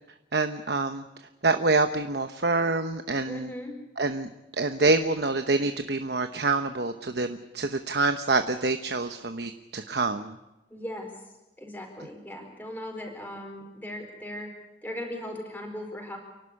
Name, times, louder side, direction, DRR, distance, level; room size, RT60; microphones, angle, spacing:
voice 1, 0.3-3.5 4.0-10.3, right 3 dB, 70° right, 7 dB, 1.0 m, -26 dB
voice 2, 3.3-3.7 10.7-11.1 11.6-14.5 14.8-16.2, left 1 dB, 10° left, 1 dB, 4.5 m, -38 dB
29.0 x 12.0 x 9.9 m, 1.0 s
head